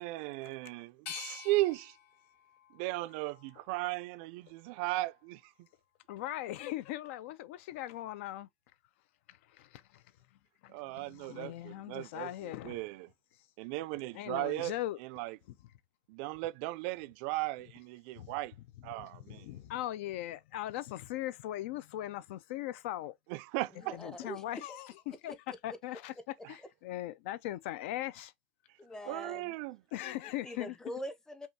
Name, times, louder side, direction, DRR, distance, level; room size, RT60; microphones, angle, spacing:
voice 1, 0.0-2.0 2.7-5.5 10.7-13.1 13.6-14.7 15.0-15.4 16.1-18.5 18.8-19.5 23.3-24.0 29.1-29.8, right 19 dB, 70° right, 0.3 m, -36 dB
sound 1, 1.1-4.0 4.5-5.3, left 9 dB, 70° left, 1.3 m, -49 dB
voice 2, 6.1-8.5 9.3-10.0 10.6-12.8 14.1-15.0 15.5-15.6 18.2-18.3 19.0-23.1 23.9-25.3 25.6-26.1 26.5-28.3 29.9-30.8, left 14 dB, 90° left, 0.4 m, -40 dB
voice 3, 23.7-24.8 25.3-25.8 28.8-29.6 30.4-31.5, equal, 10° left, 0.5 m, -44 dB
5.4 x 2.3 x 2.7 m
cardioid pair, 150°, 6 cm